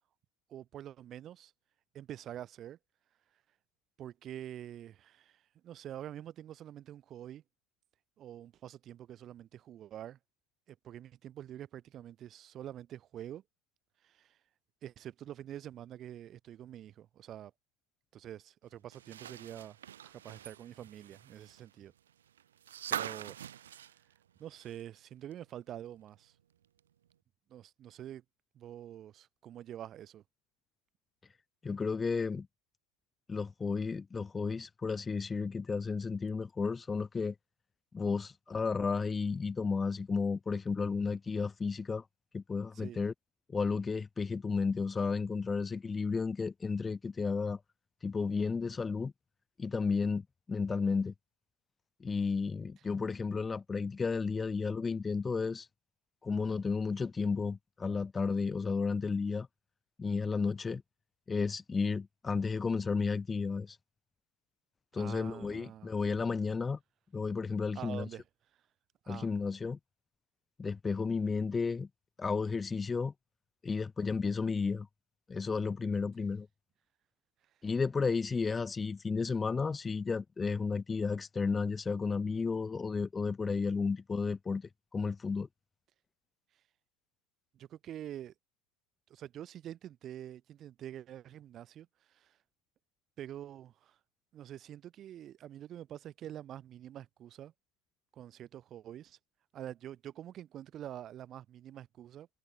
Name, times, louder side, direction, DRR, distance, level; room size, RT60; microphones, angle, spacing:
voice 1, 0.5-1.5 1.9-2.8 4.0-7.4 8.2-10.2 10.7-13.4 14.0-14.4 14.8-17.5 18.1-19.8 20.0-21.9 22.9-23.9 24.4-26.3 27.5-28.2 28.5-30.2 42.7-43.0 64.9-65.9 67.7-68.2 69.0-69.3 87.5-88.3 89.1-92.4 93.2-94.0 94.3-97.5 98.1-99.2 99.5-102.3, right 11 dB, 35° right, 5.9 m, -46 dB
sound 1, 18.9-25.0 25.3-25.4 26.8-26.9, right 10 dB, 80° right, 2.3 m, -43 dB
voice 2, 31.6-32.5 33.3-37.3 37.9-42.0 42.3-43.1 43.5-47.6 48.0-49.1 49.6-51.1 52.0-55.7 56.2-59.5 60.0-60.8 61.3-63.8 64.9-66.8 67.1-68.1 69.1-69.8 70.6-71.9 72.2-73.1 73.6-74.9 75.3-76.5 77.6-85.5, left 4 dB, 15° left, 2.1 m, -33 dB
hypercardioid pair, 105°, 0 cm